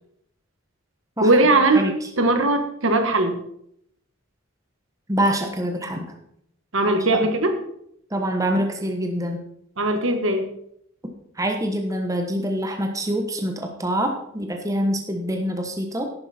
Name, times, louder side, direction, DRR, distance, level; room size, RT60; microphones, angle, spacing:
voice 1, 1.2-1.9 2.2-3.4 6.7-7.6 9.8-10.5, right 2 dB, 70° right, 6 dB, 1.6 m, -19 dB
voice 2, 5.1-6.1 7.1-7.2 8.1-9.4 11.4-16.0, equal, 15° right, 3 dB, 1.2 m, -25 dB
11.5 x 9.8 x 4.4 m, 0.71 s
head